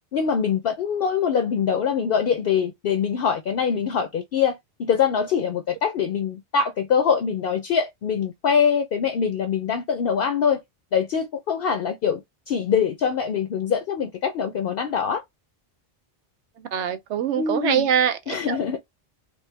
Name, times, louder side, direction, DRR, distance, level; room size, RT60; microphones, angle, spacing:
voice 1, 0.1-10.6 10.9-12.2 12.5-15.2 17.3-17.9 18.3-18.8, left 7 dB, 60° left, 0.8 m, -23 dB
voice 2, 16.7-18.8, right 8 dB, 80° right, 0.9 m, -24 dB
3.0 x 2.6 x 3.4 m
omnidirectional pair, 1.2 m